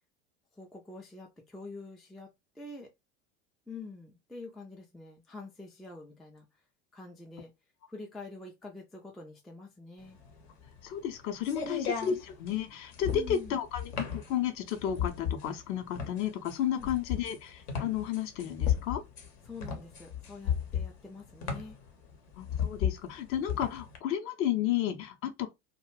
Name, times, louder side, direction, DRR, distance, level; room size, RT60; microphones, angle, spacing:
voice 1, 0.6-2.9 3.7-6.6 6.9-7.5 7.9-10.2 11.6-11.9 13.1-13.6 16.7-16.9 19.5-21.8, left 2 dB, ahead, 0.3 m, -46 dB
sound 1, 10.1-24.0, left 8 dB, 65° left, 0.8 m, -35 dB
voice 2, 10.8-19.0 22.4-25.5, left 10 dB, 40° left, 0.6 m, -32 dB
2.3 x 2.1 x 3.1 m
figure-of-eight pair, 75°, 35 cm